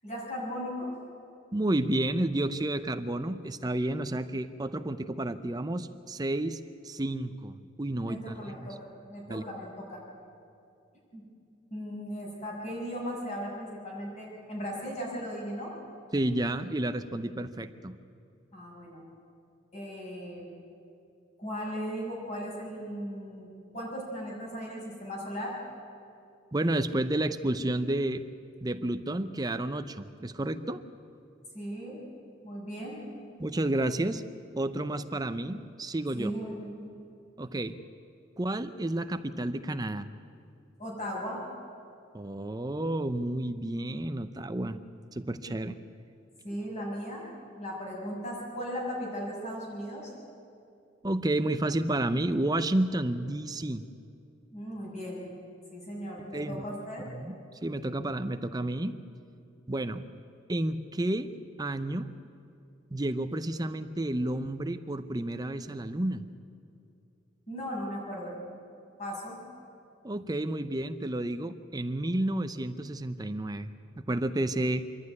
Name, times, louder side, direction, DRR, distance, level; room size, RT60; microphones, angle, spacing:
voice 1, 0.0-1.0 8.1-8.7 9.1-10.0 11.1-11.2 11.7-15.7 18.5-19.0 19.7-20.5 21.4-23.5 23.7-25.5 31.5-32.0 32.4-33.0 36.2-36.7 40.8-41.4 46.4-47.3 47.5-50.1 54.5-55.2 55.7-57.1 67.5-68.4 69.0-69.4, equal, 35° left, -3 dB, 6.6 m, -37 dB
voice 2, 1.5-6.6 6.8-8.7 9.3-9.4 16.1-18.0 26.5-28.2 28.6-30.8 33.4-34.2 34.6-36.3 37.4-37.8 38.4-40.1 42.1-44.8 45.1-45.8 51.0-53.9 56.3-56.6 57.2-57.3 57.6-59.0 59.7-60.0 60.5-61.3 61.6-62.1 62.9-66.2 70.0-73.7 74.0-74.9, right 1 dB, 20° right, 10 dB, 0.6 m, -31 dB
26.5 x 12.0 x 9.6 m, 2.5 s
head